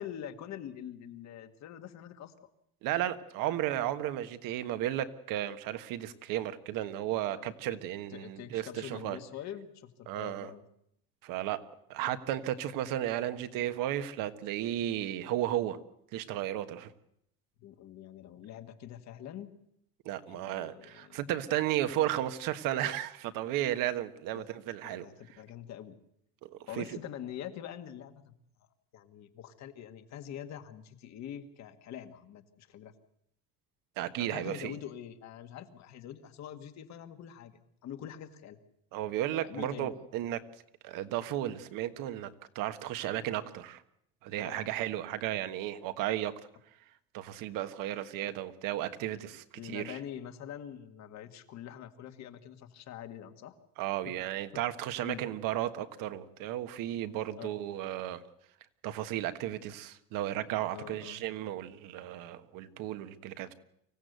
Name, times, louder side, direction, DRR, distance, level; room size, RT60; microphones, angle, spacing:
voice 1, 0.0-2.5 3.4-3.6 7.3-7.5 8.1-10.6 17.6-19.6 20.2-21.2 24.3-24.5 24.8-25.9 26.7-28.3 28.9-32.9 34.2-38.6 39.4-40.0 44.4-44.7 49.5-53.5 54.0-54.1 54.5-54.6 55.0-55.2 57.4-57.6 60.7-61.2, left 10 dB, 50° left, 9 dB, 1.8 m, -45 dB
voice 2, 2.8-9.2 10.1-10.5 11.2-11.6 11.9-15.8 16.1-16.9 20.0-25.1 26.4-26.8 34.0-34.8 38.9-40.4 40.8-43.8 44.2-46.3 47.1-50.0 53.8-58.2 58.8-63.5, right 13 dB, 65° right, 10 dB, 1.5 m, -34 dB
25.0 x 16.0 x 8.0 m, 0.74 s
cardioid pair, 150°, 36 cm